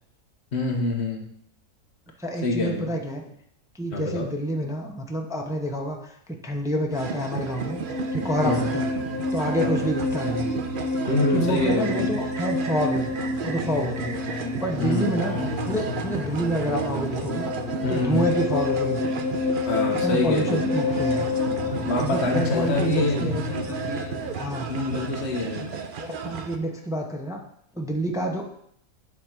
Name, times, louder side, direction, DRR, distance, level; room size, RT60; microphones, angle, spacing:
voice 1, 0.5-1.3 2.4-2.9 3.9-4.3 8.4-8.7 9.6-9.9 11.1-12.1 14.8-15.2 17.8-18.3 19.7-20.7 21.9-23.3 24.7-25.7, left 2 dB, 45° left, 1 dB, 1.4 m, -26 dB
voice 2, 2.2-3.2 3.7-6.1 6.4-7.8 8.1-8.9 9.3-10.5 11.2-13.1 13.4-14.2 14.5-17.5 17.9-19.0 19.9-21.3 22.0-24.7 25.6-25.7 26.0-27.4 27.7-28.4, right 1 dB, 5° right, 1 dB, 0.3 m, -28 dB
sound 1, 6.9-26.6, right 6 dB, 60° right, 0.5 m, -33 dB
sound 2, 7.3-25.8, left 3 dB, 75° left, 1.9 m, -29 dB
9.2 x 3.4 x 5.9 m, 0.71 s
omnidirectional pair, 1.6 m